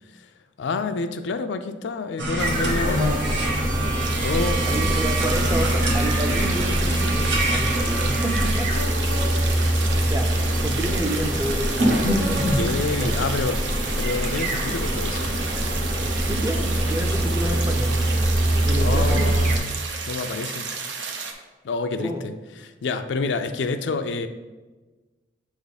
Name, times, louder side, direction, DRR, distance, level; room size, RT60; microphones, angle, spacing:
voice 1, 0.6-3.2 4.2-4.6 12.6-13.6 14.0-15.3 18.8-19.6 20.1-20.7 21.6-22.3 22.6-24.3, left 4 dB, 75° left, 8 dB, 0.4 m, -28 dB
sound 1, 2.2-8.5, right 2 dB, 70° right, 1.0 m, -27 dB
sound 2, 2.4-19.6, right 1 dB, 45° right, 0.9 m, -24 dB
sound 3, 4.0-21.3, right 5 dB, 85° right, 0.7 m, -32 dB
voice 2, 4.7-8.7 9.6-10.4 10.6-12.5 13.0-13.3 16.2-18.0 18.7-19.4 22.0-22.2, right 1 dB, 15° right, 4 dB, 0.5 m, -30 dB
7.1 x 3.5 x 4.0 m, 1.2 s
head